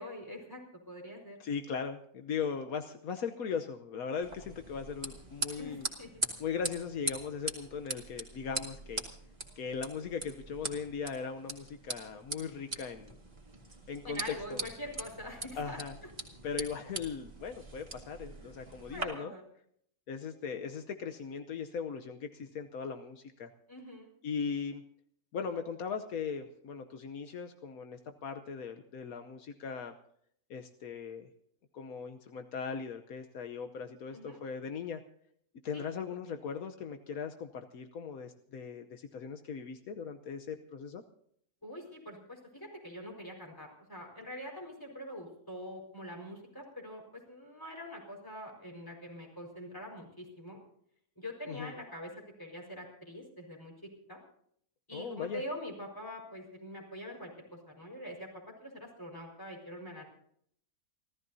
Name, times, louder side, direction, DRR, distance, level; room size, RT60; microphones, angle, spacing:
voice 1, 0.0-1.4 5.6-6.1 14.0-15.8 18.9-19.4 23.7-24.1 34.1-34.4 35.7-35.8 41.6-50.6 51.2-54.2 54.9-60.0, equal, 15° left, 1 dB, 4.9 m, -44 dB
voice 2, 1.4-5.9 6.4-9.0 9.6-13.2 13.9-14.6 15.5-15.9 16.4-19.3 20.1-23.5 24.2-24.8 25.3-29.9 30.5-31.3 31.7-35.0 35.6-41.0 51.5-51.7 54.9-55.4, left 6 dB, 75° left, 7 dB, 1.4 m, -39 dB
sound 1, 4.2-19.0, right 2 dB, 30° right, 2.3 m, -42 dB
29.5 x 14.0 x 2.7 m, 0.66 s
omnidirectional pair, 1.5 m